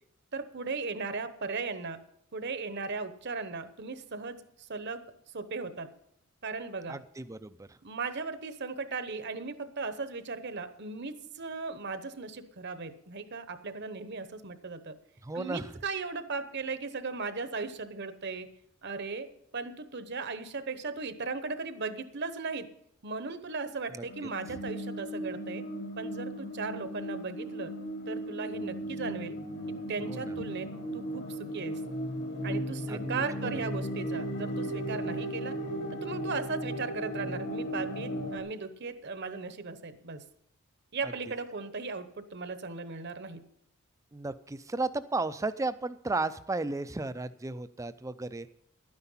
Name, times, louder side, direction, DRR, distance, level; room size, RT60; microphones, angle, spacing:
voice 1, 0.3-2.0 2.3-5.0 5.3-5.9 6.4-7.0 7.8-14.9 15.3-18.5 18.8-19.3 19.5-22.7 23.0-25.6 26.0-27.7 28.1-29.4 29.9-30.7 30.9-31.8 32.4-35.6 35.9-40.2 40.9-43.4, right 4 dB, 50° right, 11 dB, 0.9 m, -37 dB
voice 2, 6.9-7.8 15.2-15.7 23.9-24.0 24.5-24.6 30.1-30.3 32.9-33.6 41.0-41.1 44.1-48.5, right 3 dB, 15° right, 12 dB, 0.4 m, -34 dB
sound 1, 24.1-38.4, right 1 dB, 50° left, 1.6 m, -36 dB
12.0 x 9.8 x 5.6 m, 0.73 s
head